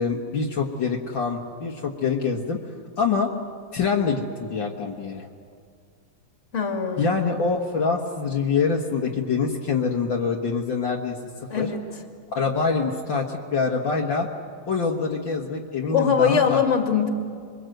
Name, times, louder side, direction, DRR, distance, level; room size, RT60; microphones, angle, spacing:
voice 1, 0.0-2.6 3.0-3.3 3.7-5.3 7.0-11.7 12.4-14.3 14.7-16.6, left 5 dB, 60° left, 0 dB, 2.1 m, -25 dB
voice 2, 6.5-7.1 11.5-11.8 15.9-17.1, left 7 dB, 35° left, 3 dB, 2.5 m, -22 dB
27.5 x 23.0 x 7.9 m, 2.2 s
omnidirectional pair, 2.3 m